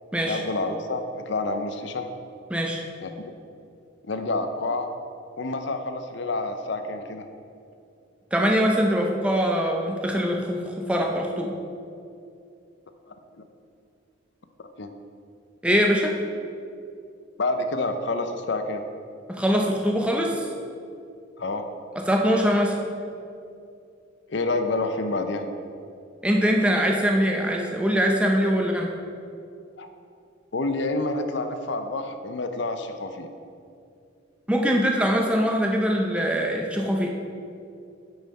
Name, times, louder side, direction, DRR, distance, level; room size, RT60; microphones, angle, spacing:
voice 1, 0.2-2.1 3.0-3.1 4.1-4.9 5.4-7.3 13.1-13.4 14.8-14.9 17.4-18.8 21.4-21.7 24.3-25.5 29.8-29.9 30.5-33.3, left 2 dB, 60° left, 7 dB, 0.6 m, -28 dB
voice 2, 2.5-2.8 8.3-11.6 15.6-16.1 19.3-20.5 22.0-22.8 26.2-28.9 34.5-37.1, equal, 5° right, 1 dB, 0.5 m, -23 dB
9.0 x 5.5 x 4.1 m, 2.5 s
head